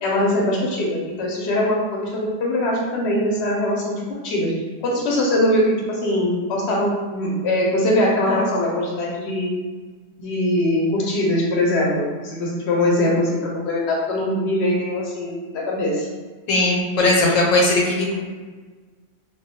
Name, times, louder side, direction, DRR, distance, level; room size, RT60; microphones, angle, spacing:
voice 1, 0.0-9.5 10.2-16.1, left 1 dB, 65° left, -2 dB, 0.8 m, -22 dB
voice 2, 16.5-18.1, left 2 dB, 90° left, -2 dB, 1.0 m, -18 dB
2.2 x 2.1 x 2.7 m, 1.4 s
omnidirectional pair, 1.3 m